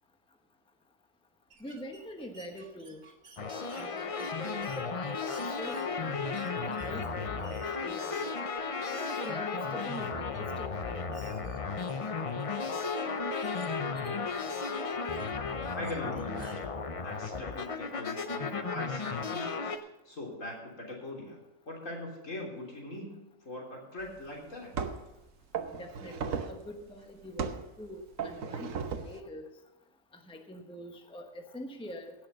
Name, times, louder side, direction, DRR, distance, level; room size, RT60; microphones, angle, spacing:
sound 1, 1.5-16.6, right 4 dB, 60° right, 1.6 m, -58 dB
voice 1, 1.6-3.0 3.5-4.1 4.4-6.0 6.5-8.3 8.9-11.1 25.8-27.5 27.8-29.5 30.3-32.1, equal, 5° left, 4 dB, 1.0 m, -45 dB
sound 2, 3.4-19.8, left 4 dB, 35° left, 0.5 m, -34 dB
voice 2, 15.8-16.7 17.0-19.8 20.1-21.4 21.7-24.7, left 1 dB, 75° left, -2 dB, 3.7 m, -41 dB
sound 3, 24.0-24.1 24.7-25.1 25.5-26.6 27.4-27.7 28.2-29.2, right 6 dB, 85° right, 1.4 m, -35 dB
17.0 x 6.5 x 6.7 m, 0.97 s
omnidirectional pair, 1.4 m